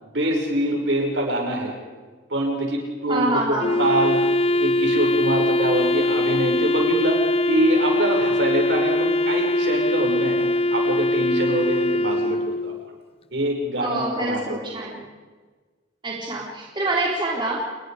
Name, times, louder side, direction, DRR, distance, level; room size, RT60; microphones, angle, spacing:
voice 1, 0.0-1.7 2.3-4.2 4.6-7.2 7.5-12.7 13.3-14.6, right 1 dB, 70° right, 1 dB, 5.8 m, -24 dB
voice 2, 3.1-3.8 13.8-15.0 16.0-17.8, right 2 dB, 25° right, -3 dB, 3.9 m, -26 dB
Wind instrument woodwind instrument, 3.6-12.9, left 1 dB, 30° left, 0.6 m, -22 dB
29.5 x 21.0 x 5.0 m, 1.4 s
head